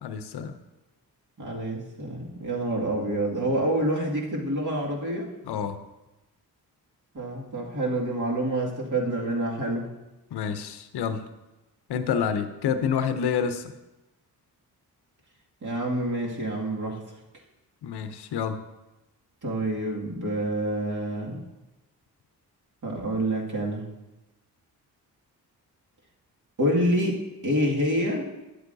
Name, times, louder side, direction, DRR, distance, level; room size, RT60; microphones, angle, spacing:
voice 1, 0.0-0.5 5.5-5.8 10.3-11.2 11.9-13.6 17.8-18.6, left 7 dB, 75° left, 10 dB, 0.7 m, -28 dB
voice 2, 1.4-5.3 7.1-9.9 15.6-17.0 19.4-21.4 22.8-23.9 26.6-28.3, right 1 dB, 50° right, -2 dB, 2.1 m, -27 dB
10.5 x 8.0 x 2.6 m, 1.0 s
cardioid pair, 65°, 40 cm